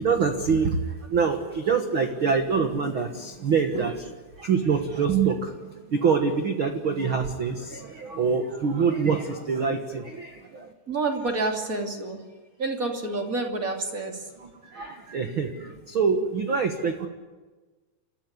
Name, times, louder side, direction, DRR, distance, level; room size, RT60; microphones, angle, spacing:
voice 1, 0.0-10.7 14.4-17.1, right 5 dB, 75° right, 5 dB, 1.1 m, -25 dB
voice 2, 10.9-12.2 12.6-14.1, right 3 dB, 25° right, 2 dB, 2.7 m, -28 dB
29.5 x 14.5 x 9.7 m, 1.3 s
omnidirectional pair, 4.8 m